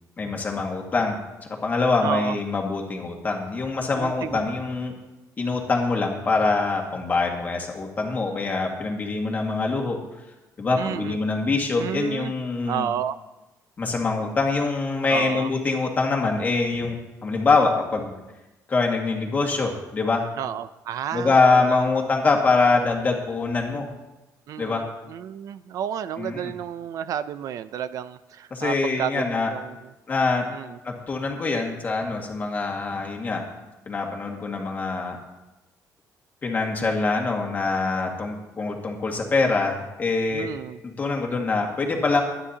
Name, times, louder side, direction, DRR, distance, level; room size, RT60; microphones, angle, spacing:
voice 1, 0.2-1.2 1.6-4.9 5.4-10.0 10.6-12.9 13.8-17.0 17.2-18.1 18.7-20.3 21.1-23.9 24.6-24.9 26.2-26.4 28.5-29.5 30.1-30.5 30.8-33.4 33.9-35.2 36.4-40.5 40.8-42.2, left 3 dB, 25° left, 1 dB, 1.9 m, -24 dB
voice 2, 2.0-2.4 4.0-4.4 10.8-11.2 11.8-12.3 12.7-13.2 15.1-15.5 20.4-21.9 24.5-29.9 30.5-30.8 40.3-40.8, right 9 dB, 60° right, 13 dB, 0.4 m, -31 dB
23.5 x 9.8 x 2.9 m, 1.0 s
cardioid pair, 170°, 7 cm